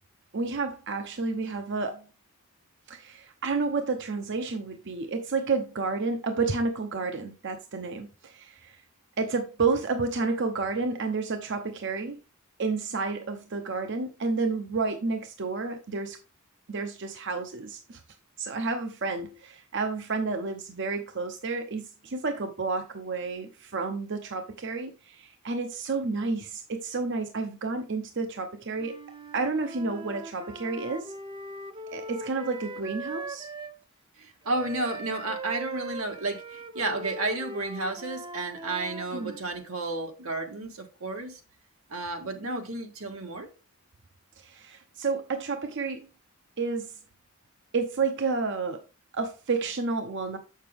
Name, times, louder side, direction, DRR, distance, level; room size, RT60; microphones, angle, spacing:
voice 1, 0.3-2.0 2.9-8.8 9.2-12.2 12.6-16.2 16.7-18.0 18.4-29.0 29.3-31.1 31.9-33.5 39.1-39.3 44.4-46.1 46.6-47.0 47.7-48.8 49.1-50.4, right 4 dB, 55° right, 0.7 m, -30 dB
Wind instrument woodwind instrument, 28.7-33.8 34.5-39.4, right 2 dB, 25° right, 0.6 m, -40 dB
voice 2, 34.2-41.4 41.9-43.5, right 2 dB, 85° right, 1.7 m, -32 dB
6.9 x 6.6 x 3.4 m
head